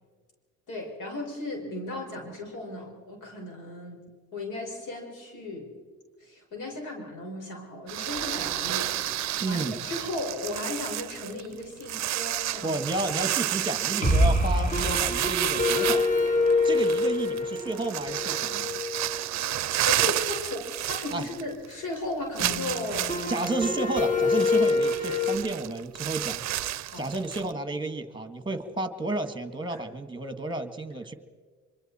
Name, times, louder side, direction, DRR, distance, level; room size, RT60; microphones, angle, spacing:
voice 1, 0.7-4.0 4.3-5.7 6.2-12.8 19.1-19.3 19.8-23.2 26.8-27.1 29.7-29.8, left 2 dB, 80° left, 1 dB, 5.6 m, -36 dB
sound 1, 7.9-21.7 21.9-22.0 22.4-27.5, right 14 dB, 65° right, 0.5 m, -31 dB
sound 2, 8.2-9.4 9.7-9.8 10.0-10.1 14.0-19.7 22.4-25.4, left 2 dB, 25° left, 2.5 m, -26 dB
voice 2, 9.4-9.8 12.6-16.1 16.6-18.7 21.1-21.3 23.3-26.4 27.0-31.1, right 2 dB, 15° right, 9 dB, 1.8 m, -31 dB
24.5 x 24.5 x 4.4 m, 1.5 s
cardioid pair, 90°, 30 cm